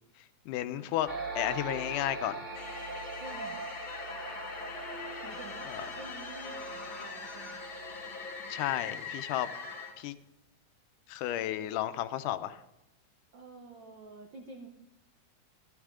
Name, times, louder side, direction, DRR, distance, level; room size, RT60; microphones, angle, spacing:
voice 1, 0.5-1.1 1.4-2.4 5.7-5.8 8.5-9.5 10.0-10.1 11.1-12.6, left 13 dB, 90° left, 11 dB, 2.2 m, -32 dB
sound 1, 1.1-8.5, right 3 dB, 20° right, 1.6 m, -42 dB
sound 2, 2.5-10.0, left 5 dB, 45° left, 2.5 m, -42 dB
voice 2, 3.1-3.7 5.2-7.6 13.3-14.7, right 3 dB, 80° right, 2 dB, 1.0 m, -49 dB
14.5 x 12.0 x 3.7 m, 0.91 s
omnidirectional pair, 3.6 m